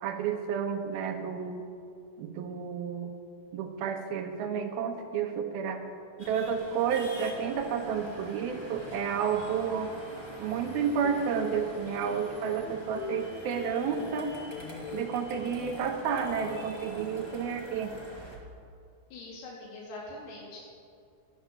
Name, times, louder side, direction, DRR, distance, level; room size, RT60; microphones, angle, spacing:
voice 1, 0.0-1.6 2.2-3.1 3.5-5.8 6.2-9.9 10.4-14.3 14.9-17.9, right 7 dB, 80° right, 4 dB, 2.9 m, -31 dB
sound 1, 6.2-18.4, right 1 dB, 30° left, 0.5 m, -45 dB
sound 2, 10.7-11.6 12.0-14.2 14.5-15.1, left 6 dB, 65° left, 2.2 m, -42 dB
voice 2, 19.1-20.6, left 2 dB, 85° left, -4 dB, 4.1 m, -43 dB
12.5 x 12.0 x 7.0 m, 2.4 s
omnidirectional pair, 4.4 m